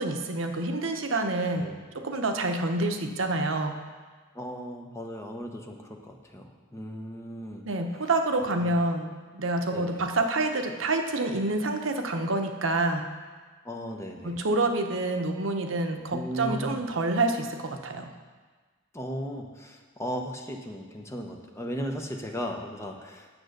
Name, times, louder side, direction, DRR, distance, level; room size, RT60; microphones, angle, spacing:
voice 1, 0.0-3.8 7.7-13.1 14.2-18.1, right 2 dB, 70° right, 5 dB, 0.9 m, -28 dB
voice 2, 4.3-7.7 8.5-8.7 9.7-10.1 13.6-14.4 16.1-16.8 18.9-23.3, equal, 15° left, 2 dB, 0.9 m, -36 dB
9.0 x 7.7 x 6.5 m, 1.4 s
head